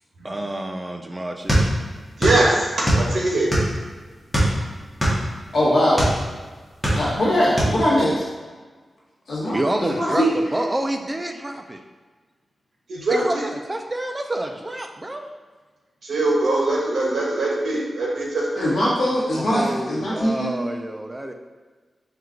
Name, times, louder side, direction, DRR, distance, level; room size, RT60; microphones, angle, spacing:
voice 1, 0.2-1.6 9.5-11.8 13.1-15.3 19.3-21.3, right 1 dB, 15° right, 4 dB, 0.3 m, -28 dB
sound 1, 1.5-2.4 2.7-3.8 4.3-6.2 6.6-7.3 7.6-7.8, right 1 dB, ahead, 1.1 m, -20 dB
voice 2, 2.2-2.7 3.0-3.5 12.9-13.4 16.0-18.7, right 2 dB, 75° right, -3 dB, 1.0 m, -22 dB
voice 3, 5.5-6.0 6.8-8.3 9.3-9.6 10.0-10.3 18.6-20.5, equal, 65° left, -7 dB, 1.0 m, -21 dB
4.5 x 2.3 x 3.7 m, 1.4 s
wide cardioid pair, 160°, 0 cm